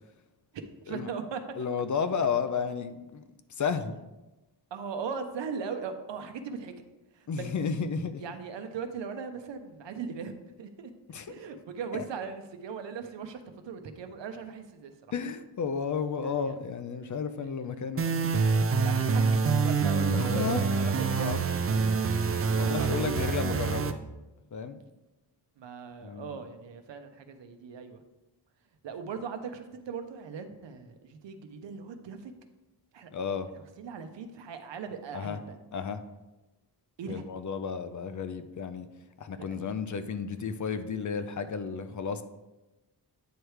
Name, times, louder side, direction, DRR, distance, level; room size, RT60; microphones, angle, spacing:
voice 1, 0.5-1.4 4.7-6.7 7.1-7.5 8.2-10.9 11.3-15.0 16.2-16.5 18.8-19.2 19.6-22.1 22.4-23.3 25.6-28.0 28.8-32.3 32.9-33.1 33.5-35.6 37.0-37.2 39.4-39.7, right 5 dB, 80° right, 7 dB, 0.8 m, -39 dB
voice 2, 1.6-3.2 3.6-4.0 7.3-8.2 11.1-11.3 11.9-12.1 15.1-18.4 20.1-20.6 21.0-21.4 22.5-24.0 24.5-24.8 26.0-26.4 33.1-33.5 35.1-35.4 35.7-36.0 37.1-38.9 39.2-42.2, left 6 dB, 45° left, 10 dB, 0.5 m, -32 dB
sound 1, 18.0-23.9, right 5 dB, 35° right, 0.4 m, -26 dB
9.1 x 3.2 x 4.7 m, 1.0 s
wide cardioid pair, 105°, 42 cm